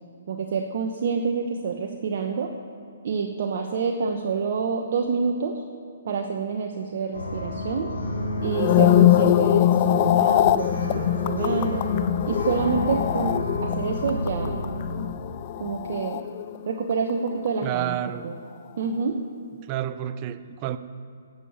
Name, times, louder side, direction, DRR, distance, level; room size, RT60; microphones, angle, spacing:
voice 1, 0.3-2.5 3.0-5.6 6.0-7.9 8.4-11.9 12.2-14.6 15.6-16.3 16.6-18.0 18.2-18.3 18.8-19.2, right 5 dB, 55° right, 3 dB, 1.0 m, -27 dB
sound 1, 7.1-15.1, left 1 dB, 80° left, 2.9 m, -31 dB
sound 2, 8.4-16.8 17.1-17.5, left 12 dB, 40° left, 0.4 m, -22 dB
voice 2, 17.6-18.2 19.6-20.8, right 12 dB, 30° right, 12 dB, 0.6 m, -29 dB
11.5 x 7.4 x 7.1 m, 2.5 s
hypercardioid pair, 135°, 0 cm